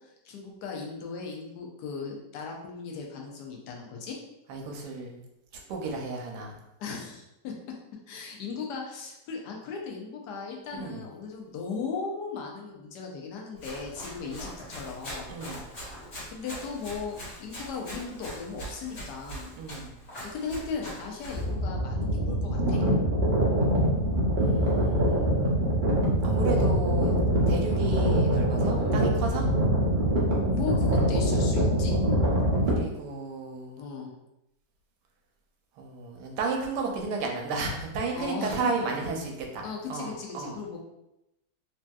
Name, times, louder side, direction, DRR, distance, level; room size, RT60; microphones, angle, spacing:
voice 1, 0.2-4.2 6.8-7.5 8.1-15.3 16.3-19.5 20.2-22.8 27.5-27.7 28.7-28.9 30.5-31.9 33.8-34.1 38.1-38.9 39.6-40.8, left 5 dB, 80° left, 0 dB, 1.2 m, -37 dB
voice 2, 4.5-5.2 5.7-6.6 10.8-11.0 14.2-14.4 15.3-15.6 19.6-19.9 24.4-25.5 26.2-27.2 27.5-29.5 32.6-33.8 35.8-39.6 39.9-40.6, right 3 dB, 80° right, 2 dB, 1.2 m, -33 dB
Run, 13.6-21.5, equal, 45° left, 1.6 m, -42 dB
sound 1, 21.3-32.8, right 1 dB, 60° right, 0.5 m, -24 dB
3.3 x 2.6 x 2.2 m, 0.88 s
omnidirectional pair, 1.8 m